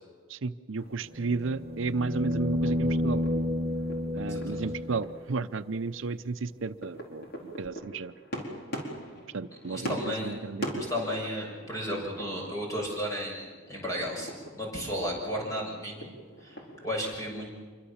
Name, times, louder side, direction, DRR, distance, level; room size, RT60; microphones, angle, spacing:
voice 1, 0.3-3.2 4.1-8.1 9.3-10.8, right 4 dB, 75° right, 12 dB, 0.6 m, -33 dB
sound 1, 0.8-17.0, equal, 50° left, 4.5 m, -43 dB
sound 2, 1.1-5.3 7.7-7.8, left 1 dB, 30° right, 1.2 m, -30 dB
voice 2, 9.7-10.3 10.9-16.1 16.4-16.6 16.8-17.5, equal, 15° left, -2 dB, 6.8 m, -34 dB
26.5 x 23.0 x 7.2 m, 1.5 s
head